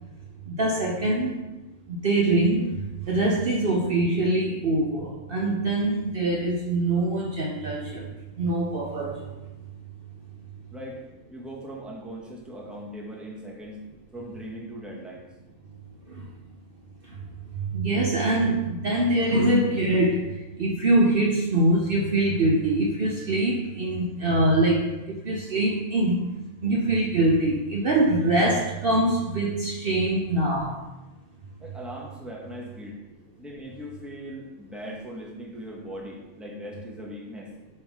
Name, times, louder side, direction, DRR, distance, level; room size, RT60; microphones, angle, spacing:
voice 1, 0.5-1.3 1.9-9.4 16.1-16.3 17.0-17.3 17.6-26.2 26.6-30.8, right 1 dB, 50° right, -1 dB, 0.9 m, -24 dB
voice 2, 10.7-11.0 11.3-13.9 14.1-15.3 31.6-33.0 33.4-37.5, equal, ahead, -3 dB, 1.2 m, -39 dB
9.8 x 3.6 x 4.7 m, 1.0 s
omnidirectional pair, 1.4 m